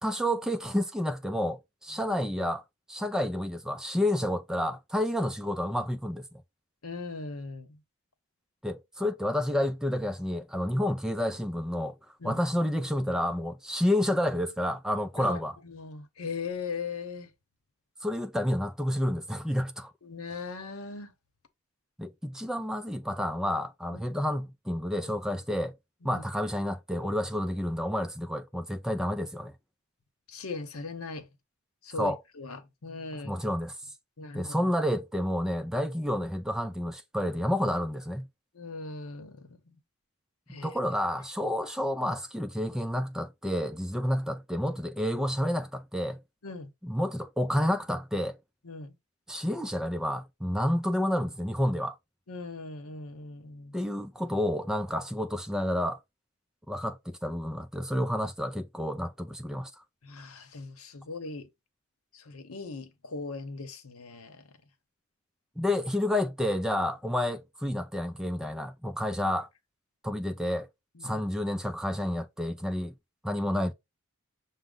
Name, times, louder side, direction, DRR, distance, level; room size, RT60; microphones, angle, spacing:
voice 1, 0.0-2.6 2.9-6.2 8.6-12.0 12.2-15.6 18.0-19.9 22.0-25.7 26.0-29.5 32.0-32.2 33.2-33.8 34.3-38.3 40.6-46.2 46.8-48.4 49.3-52.0 53.7-56.0 56.7-59.7 65.6-69.5 70.0-70.7 71.0-72.9 73.2-73.7, left 1 dB, 5° right, 0.4 m, -30 dB
voice 2, 6.8-7.8 12.2-12.4 15.2-17.3 20.0-21.1 23.9-24.0 26.0-26.2 30.3-31.3 31.8-33.3 34.2-34.7 38.5-39.8 40.5-40.7 46.4-46.7 48.6-49.0 52.3-53.8 60.0-61.5 62.1-64.5 71.0-71.2, left 4 dB, 85° left, 0.9 m, -39 dB
6.1 x 2.1 x 3.8 m
head